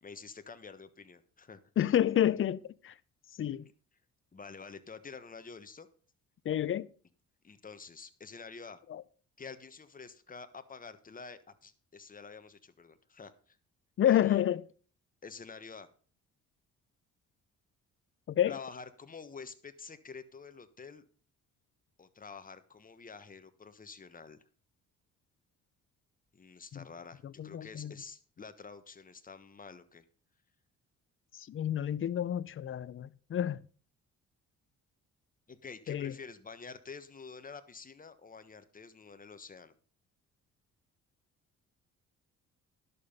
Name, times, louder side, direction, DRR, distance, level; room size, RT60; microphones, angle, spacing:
voice 1, 0.0-1.6 4.3-5.9 7.4-8.8 9.4-13.6 14.1-14.4 15.2-15.9 18.5-21.1 22.0-24.4 26.3-30.0 35.5-39.7, left 5 dB, 30° left, 1.3 m, -48 dB
voice 2, 1.8-2.9 3.4-3.7 6.4-6.9 8.9-9.0 14.0-14.6 18.3-18.6 26.7-26.8 27.2-27.9 31.3-33.6 35.9-36.1, left 11 dB, 45° left, 0.6 m, -29 dB
11.0 x 6.9 x 5.5 m
cardioid pair, 90°, 30 cm